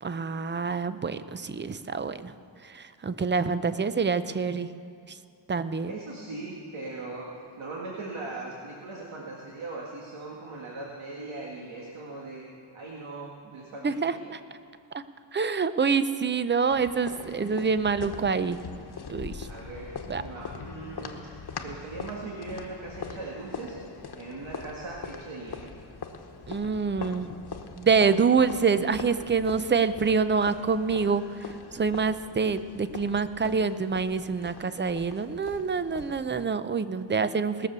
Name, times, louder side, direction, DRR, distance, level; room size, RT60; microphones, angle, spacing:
voice 1, 0.0-2.3 2.7-4.7 5.5-5.9 13.8-14.4 15.3-18.6 19.1-19.5 20.1-20.2 26.5-27.3 27.8-31.2 31.7-37.7, right 5 dB, 25° right, 13 dB, 0.5 m, -26 dB
voice 2, 5.9-7.3 7.6-12.4 12.7-14.3 19.5-19.9 20.2-21.3 21.6-23.8 24.1-25.7 28.7-28.9, right 3 dB, 80° right, -3 dB, 1.8 m, -39 dB
sound 1, 16.7-36.4, left 5 dB, 55° left, 1.2 m, -42 dB
19.5 x 6.9 x 6.8 m, 2.6 s
cardioid pair, 80°, 47 cm